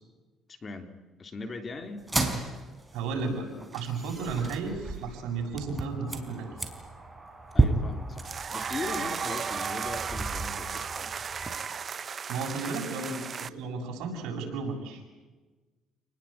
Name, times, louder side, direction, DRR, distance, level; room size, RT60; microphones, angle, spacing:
voice 1, 0.5-0.9 1.2-2.1 7.5-11.2, left 3 dB, 30° left, 8 dB, 3.5 m, -39 dB
sound 1, 2.0-11.6, right 2 dB, 15° right, 4.4 m, -33 dB
voice 2, 2.9-3.5 3.7-6.5 12.3-15.0, right 4 dB, 80° right, 2 dB, 7.7 m, -33 dB
sound 2, 8.2-13.5, right 6 dB, 40° right, 1.1 m, -35 dB
29.5 x 20.5 x 9.0 m, 1.2 s
cardioid pair, 105°, 0 cm